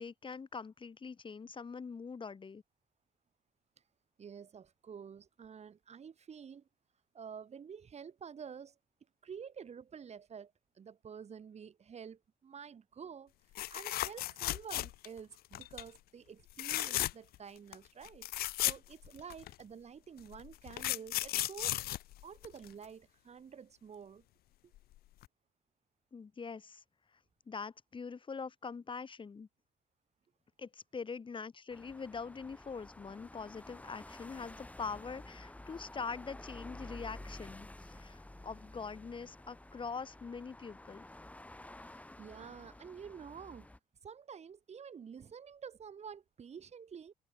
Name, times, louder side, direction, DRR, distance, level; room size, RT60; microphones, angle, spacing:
voice 1, 0.0-2.6 26.1-26.8 27.1-27.2 27.5-29.5 30.6-41.1, left 5 dB, 35° left, 3.7 m, -43 dB
voice 2, 4.2-6.7 7.1-8.8 9.2-13.3 13.7-18.3 18.6-21.8 22.2-24.2 24.6-24.7 41.9-43.7 44.0-47.1, right 7 dB, 45° right, 7.4 m, -49 dB
sound 1, 13.5-15.2 15.5-15.9 16.5-17.4 17.7-17.8 18.0-19.5 20.3-22.8 24.8-24.9 25.2-25.3, left 15 dB, 85° left, 0.9 m, -35 dB
sound 2, 31.7-43.8, left 1 dB, 10° left, 2.9 m, -51 dB
cardioid pair, 105°, 16 cm